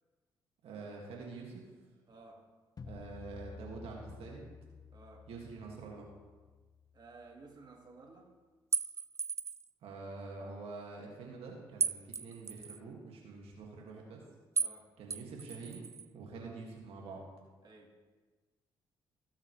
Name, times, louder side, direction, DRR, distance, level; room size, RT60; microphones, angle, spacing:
voice 1, 0.6-1.6 2.9-4.5 5.3-6.1 9.8-14.2 15.0-17.2, right 4 dB, 70° right, -1 dB, 2.2 m, -46 dB
voice 2, 2.1-2.5 4.9-5.3 6.9-8.3 14.6-15.0 16.3-16.5 17.6-18.0, right 3 dB, 45° right, 0 dB, 2.2 m, -55 dB
sound 1, 2.8-7.8, left 5 dB, 35° left, 0.8 m, -52 dB
sound 2, 8.7-9.7 11.8-12.8 14.6-14.8 15.1-16.1, right 5 dB, 25° right, 0.4 m, -35 dB
18.0 x 7.4 x 3.3 m, 1.3 s
supercardioid pair, 55°, 10 cm